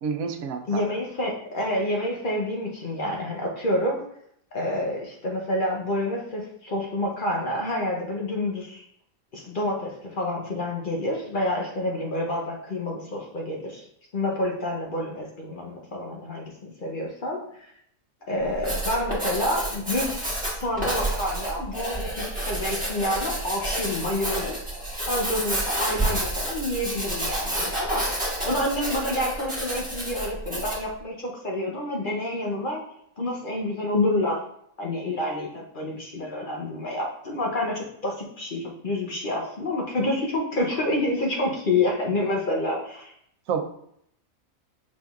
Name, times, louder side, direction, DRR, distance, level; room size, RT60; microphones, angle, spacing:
voice 1, 0.0-0.8 43.5-43.7, right 6 dB, 90° right, 4 dB, 1.1 m, -29 dB
voice 2, 0.7-4.1 4.5-8.8 9.3-13.8 14.1-17.7 18.3-24.6 25.0-28.0 28.4-32.8 33.2-34.4 34.8-43.1, left 1 dB, 45° left, -1 dB, 0.7 m, -28 dB
Writing, 18.4-30.9, right 1 dB, 5° right, 1.4 m, -29 dB
6.1 x 3.6 x 2.3 m, 0.70 s
omnidirectional pair, 1.4 m